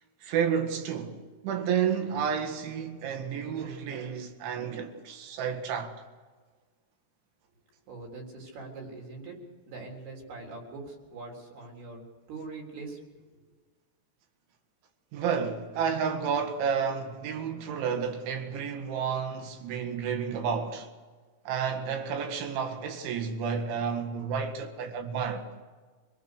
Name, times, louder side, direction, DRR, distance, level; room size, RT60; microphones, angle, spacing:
voice 1, 0.2-1.2 1.4-6.0 15.1-20.9 21.5-25.4, right 7 dB, 90° right, 4.3 m, -31 dB
voice 2, 7.9-9.4 9.7-13.0, right 3 dB, 60° right, 5.7 m, -42 dB
26.0 x 19.0 x 6.6 m
omnidirectional pair, 5.2 m